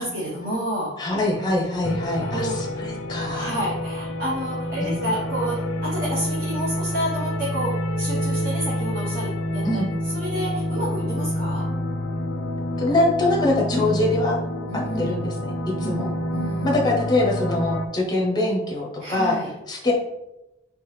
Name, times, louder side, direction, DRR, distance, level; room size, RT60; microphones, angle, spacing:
voice 1, 0.0-1.0 2.2-2.6 3.3-9.8 10.1-11.7 12.7-12.9 13.7-13.9 14.7-15.1 15.8-16.8 19.0-19.5, equal, 45° right, -7 dB, 0.9 m, -30 dB
voice 2, 1.0-3.5 4.8-5.1 9.6-9.9 12.8-14.4 15.0-15.5 15.8-16.1 16.6-19.4 19.7-19.9, left 2 dB, 20° left, -1 dB, 0.7 m, -23 dB
sound 1, 1.8-17.9, left 1 dB, 70° left, 0.4 m, -28 dB
3.4 x 3.2 x 3.1 m, 0.95 s
head